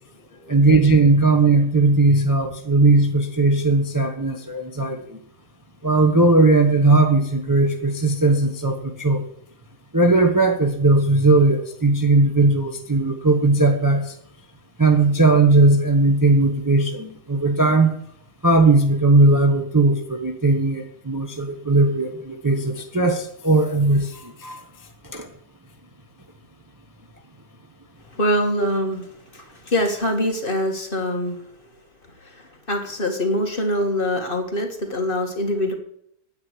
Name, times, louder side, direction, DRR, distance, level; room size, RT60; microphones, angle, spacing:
voice 1, 0.5-5.2 5.8-9.2 9.9-14.1 14.8-17.9 18.4-24.6 25.1-25.3, right 2 dB, 15° right, 3 dB, 1.0 m, -18 dB
voice 2, 28.1-29.1 29.3-31.4 32.2-35.7, left 1 dB, 35° left, 3 dB, 2.0 m, -24 dB
9.7 x 8.9 x 6.3 m, 0.70 s
omnidirectional pair, 1.6 m